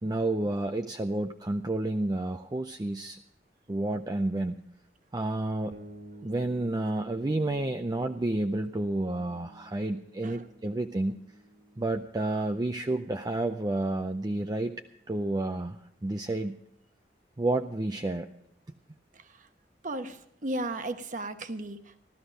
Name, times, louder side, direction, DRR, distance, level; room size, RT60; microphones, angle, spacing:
voice 1, 0.0-3.2 3.7-4.6 5.1-5.8 6.2-11.2 11.8-14.7 15.1-16.6 17.4-18.3, right 2 dB, 20° right, 6 dB, 0.5 m, -30 dB
sound 1, 5.7-15.3, right 1 dB, 85° right, 2.3 m, -53 dB
voice 2, 19.1-19.5 19.8-22.0, right 1 dB, 50° right, 8 dB, 1.1 m, -36 dB
15.5 x 13.0 x 5.2 m, 0.71 s
head